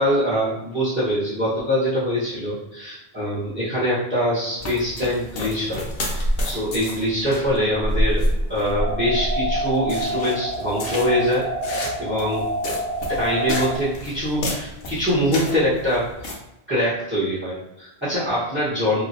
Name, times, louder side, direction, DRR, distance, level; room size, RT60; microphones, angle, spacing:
voice 1, 0.0-8.2 8.5-12.4 13.2-16.4 16.7-19.0, equal, 10° right, -10 dB, 1.0 m, -24 dB
sound 1, 4.6-16.3, equal, 65° left, 0.9 m, -29 dB
sound 2, 8.8-13.8, right 1 dB, 75° right, 0.9 m, -28 dB
3.0 x 2.4 x 2.7 m, 0.91 s
omnidirectional pair, 1.1 m